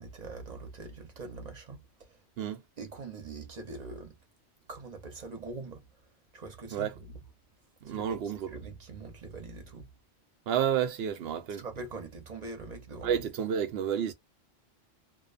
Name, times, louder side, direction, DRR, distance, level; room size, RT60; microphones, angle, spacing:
voice 1, 0.0-2.1 2.8-4.2 4.7-5.8 6.3-7.1 7.8-8.2 8.5-9.9 11.6-13.1, right 3 dB, 45° right, 0.8 m, -43 dB
voice 2, 7.8-8.5 10.5-11.7 13.0-14.1, right 9 dB, 75° right, 0.8 m, -30 dB
2.5 x 2.2 x 2.4 m
omnidirectional pair, 1.1 m